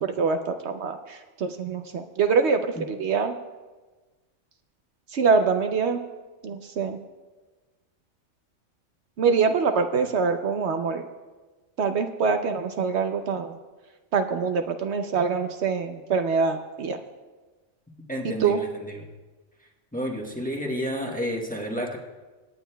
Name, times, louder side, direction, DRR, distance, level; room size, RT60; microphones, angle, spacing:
voice 1, 0.0-3.3 5.1-6.0 6.4-7.0 9.2-11.0 11.8-13.6 14.1-17.0 18.4-18.6, right 5 dB, 70° right, 7 dB, 0.9 m, -24 dB
voice 2, 18.1-19.1 19.9-22.0, equal, 5° left, 0 dB, 1.0 m, -30 dB
26.0 x 9.2 x 2.2 m, 1.3 s
omnidirectional pair, 1.2 m